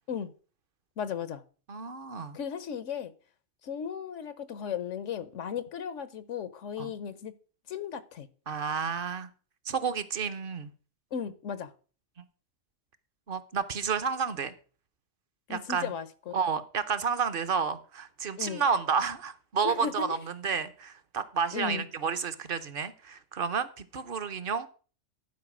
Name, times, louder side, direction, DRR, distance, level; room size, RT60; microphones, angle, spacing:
voice 1, 1.0-1.4 2.3-3.1 3.6-7.3 7.7-8.3 11.1-11.7 15.5-16.4 18.4-18.6 19.6-20.2 21.5-21.9, left 7 dB, 85° left, 15 dB, 1.2 m, -36 dB
voice 2, 1.7-2.4 6.8-6.9 8.5-9.3 9.7-10.7 13.3-14.5 15.5-15.9 16.3-24.7, right 6 dB, 50° right, 14 dB, 0.9 m, -31 dB
12.0 x 4.9 x 6.0 m, 0.38 s
omnidirectional pair, 1.2 m